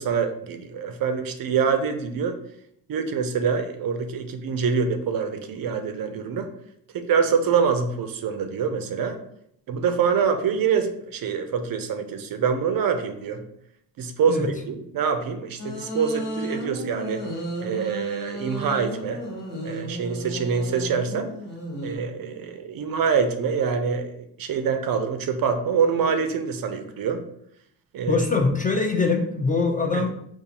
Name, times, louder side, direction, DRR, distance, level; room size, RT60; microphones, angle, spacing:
voice 1, 0.0-2.4 2.9-6.5 6.9-9.2 9.7-13.4 14.0-17.3 17.6-19.2 19.6-21.3 21.8-27.2 27.9-28.2 29.9-30.0, right 6 dB, 50° right, 7 dB, 0.5 m, -25 dB
sound 1, 15.6-22.0, right 1 dB, 60° left, 1.4 m, -34 dB
voice 2, 28.1-30.1, left 4 dB, 20° left, 2 dB, 0.4 m, -23 dB
3.8 x 2.4 x 2.8 m, 0.73 s
cardioid pair, 75°, 45 cm